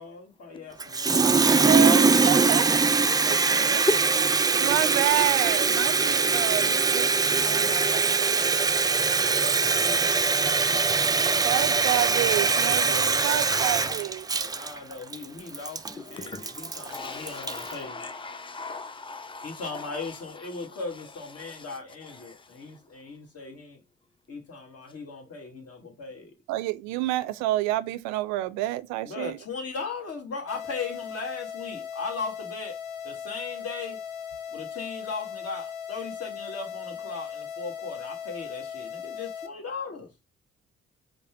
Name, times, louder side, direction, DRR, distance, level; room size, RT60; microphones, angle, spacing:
voice 1, 0.0-2.0 9.0-10.9 12.6-12.8 14.3-18.0 19.4-23.8 24.3-26.3 29.0-32.8 33.0-34.0 34.5-40.1, left 4 dB, 55° left, 1.6 m, -38 dB
Water tap faucet, 0.8-17.7, right 4 dB, 15° right, 0.4 m, -22 dB
voice 2, 1.2-2.6 3.2-3.8 4.6-8.6 11.4-14.3 26.5-29.4, right 15 dB, 70° right, 0.5 m, -29 dB
voice 3, 16.1-19.6, left 3 dB, 15° left, 0.7 m, -34 dB
sound 1, 30.5-39.5, left 8 dB, 80° left, 0.6 m, -38 dB
5.1 x 2.1 x 4.4 m
hypercardioid pair, 40°, 29 cm